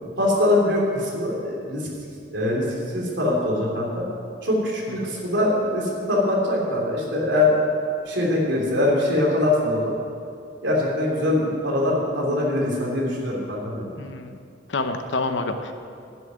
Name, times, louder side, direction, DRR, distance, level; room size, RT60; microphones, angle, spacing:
voice 1, 0.2-1.8 2.3-2.6 2.9-4.0 4.4-7.5 8.1-9.9 10.6-13.9, left 1 dB, 70° right, -3 dB, 3.2 m, -22 dB
voice 2, 14.0-14.4 14.7-15.7, left 3 dB, 75° left, 7 dB, 0.9 m, -28 dB
10.5 x 6.9 x 9.4 m, 2.4 s
head